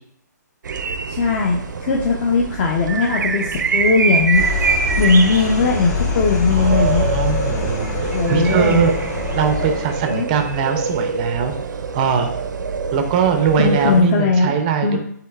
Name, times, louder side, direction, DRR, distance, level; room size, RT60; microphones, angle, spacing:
sound 1, 0.6-14.0, right 5 dB, 85° right, 0.4 m, -25 dB
voice 1, 1.1-4.4 5.0-7.1 8.1-8.9 10.1-10.3 13.6-14.5 14.8-15.0, left 4 dB, 30° left, -1 dB, 0.5 m, -18 dB
sound 2, 4.3-9.9, left 3 dB, 60° left, 1.3 m, -24 dB
voice 2, 6.5-9.0 9.3-11.6 11.9-12.3 12.9-15.0, right 7 dB, 25° right, 6 dB, 0.4 m, -21 dB
7.4 x 2.8 x 2.3 m, 0.67 s
hypercardioid pair, 155°, 10 cm